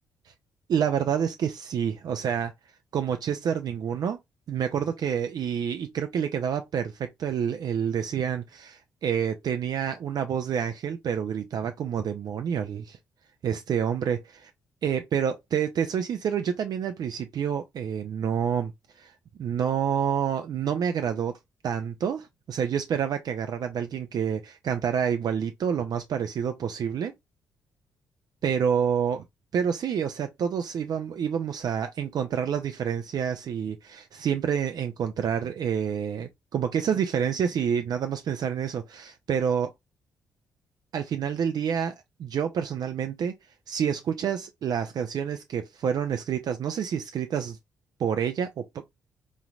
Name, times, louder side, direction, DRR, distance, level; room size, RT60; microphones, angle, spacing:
voice 1, 0.7-2.5 2.9-4.2 4.5-13.0 13.4-14.5 14.8-18.7 19.0-19.1 19.4-21.4 21.6-27.1 28.4-29.2 29.5-39.7 40.9-43.3 43.7-47.6 48.0-48.8, right 8 dB, 50° right, 0.4 m, -28 dB
3.8 x 3.0 x 2.3 m
figure-of-eight pair, 40°, 9 cm